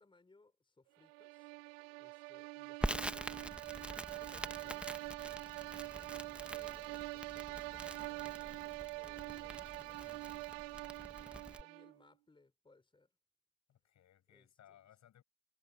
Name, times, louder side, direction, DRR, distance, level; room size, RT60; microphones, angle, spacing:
voice 1, 0.0-1.5 2.0-3.9 4.2-5.3 5.8-10.4 11.2-13.1 14.3-14.8, left 3 dB, 15° left, 4.2 m, -67 dB
sound 1, 1.0-12.0, right 29 dB, 70° right, 0.5 m, -45 dB
Crackle, 2.8-11.6, right 1 dB, 5° right, 1.4 m, -45 dB
voice 2, 13.7-15.2, left 11 dB, 45° left, 6.4 m, -64 dB
hypercardioid pair, 85°, 39 cm